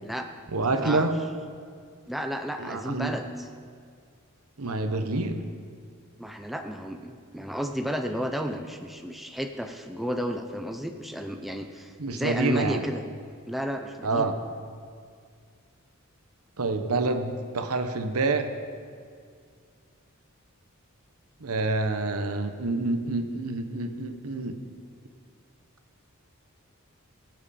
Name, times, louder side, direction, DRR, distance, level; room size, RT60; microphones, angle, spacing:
voice 1, 0.5-1.2 2.6-3.2 4.6-5.4 12.0-12.8 14.0-14.3 16.6-18.5 21.4-24.6, right 3 dB, 85° right, 7 dB, 1.0 m, -27 dB
voice 2, 2.1-3.2 6.2-13.0 13.5-14.3, equal, ahead, 4 dB, 0.5 m, -32 dB
20.5 x 7.8 x 4.2 m, 2.2 s
head